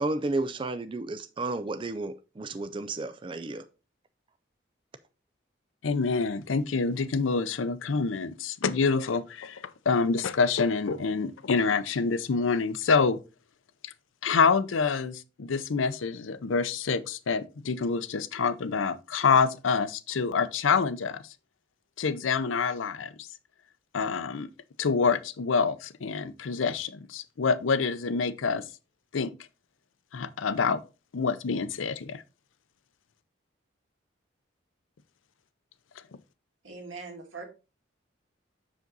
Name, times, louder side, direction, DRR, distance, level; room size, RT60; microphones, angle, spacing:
voice 1, 0.0-3.6, right 2 dB, 25° right, 0.4 m, -32 dB
voice 2, 5.8-13.2 13.8-13.9 14.2-21.2 22.0-23.3 23.9-24.5 24.8-28.7 29.1-29.3 30.1-30.8 31.1-32.2, left 5 dB, 90° left, 0.5 m, -27 dB
voice 3, 36.6-37.4, right 4 dB, 80° right, 2.1 m, -41 dB
6.7 x 5.1 x 3.9 m
head